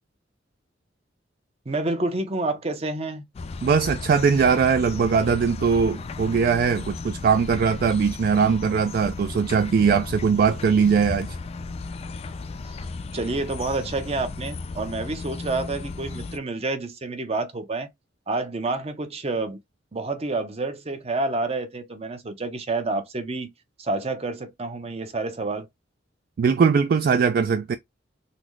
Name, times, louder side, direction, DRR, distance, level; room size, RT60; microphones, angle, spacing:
voice 1, 1.7-3.2 13.1-17.9 18.3-19.6 19.9-23.5 23.8-25.7, right 2 dB, 35° right, 0.7 m, -28 dB
sound 1, 3.3-16.4, left 3 dB, 35° left, 0.3 m, -35 dB
voice 2, 3.6-11.4 26.4-27.8, right 6 dB, 55° right, 0.3 m, -20 dB
3.9 x 2.1 x 3.1 m
head